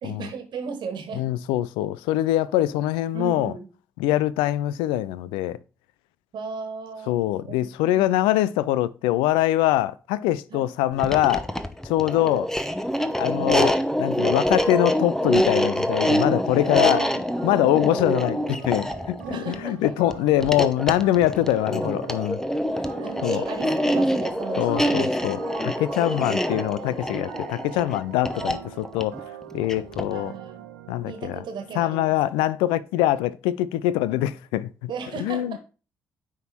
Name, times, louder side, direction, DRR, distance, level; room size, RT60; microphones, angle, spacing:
voice 1, 0.0-1.3 3.1-3.7 6.3-7.1 7.4-8.0 10.5-10.6 12.2-12.3 16.8-17.2 19.2-19.8 23.0-25.0 30.1-30.7 31.0-32.1 34.9-35.6, right 5 dB, 60° right, 1.5 m, -35 dB
voice 2, 1.2-3.5 4.0-5.6 7.1-11.5 11.8-12.5 13.2-17.0 17.4-22.4 23.2-23.4 24.6-29.2 29.5-30.3 30.9-31.4 31.7-34.9 35.2-35.6, left 14 dB, 75° left, 0.3 m, -23 dB
sound 1, 10.9-30.2, equal, 5° left, 0.8 m, -26 dB
sound 2, 17.4-32.0, right 11 dB, 85° right, 0.5 m, -42 dB
9.1 x 3.7 x 4.3 m
hypercardioid pair, 40°, 9 cm